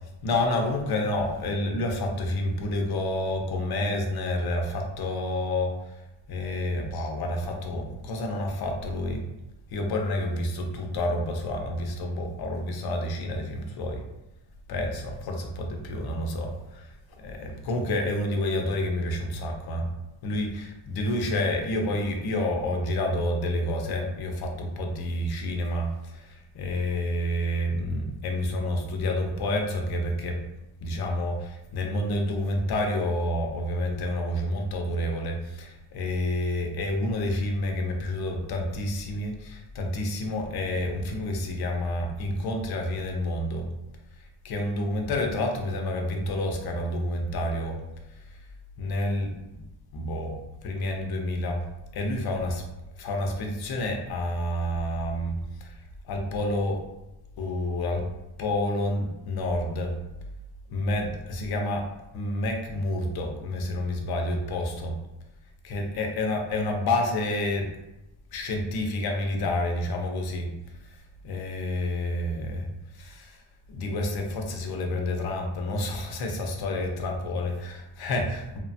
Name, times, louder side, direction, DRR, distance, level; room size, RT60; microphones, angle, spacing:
voice 1, 0.2-6.0 6.3-9.2 9.7-14.0 14.7-16.9 17.2-19.9 20.2-30.4 30.8-43.7 44.4-47.8 48.8-49.6 49.9-50.3 50.6-51.6 51.9-52.6 53.0-55.8 56.0-56.8 57.4-58.0 58.4-59.9 60.7-61.9 62.1-65.0 65.6-67.7 68.3-70.5 70.8-70.9 71.2-72.7 72.9-73.4 73.7-78.6, left 1 dB, 55° left, 2 dB, 0.5 m, -29 dB
3.0 x 2.1 x 2.6 m, 0.96 s
cardioid pair, 175°, 45 cm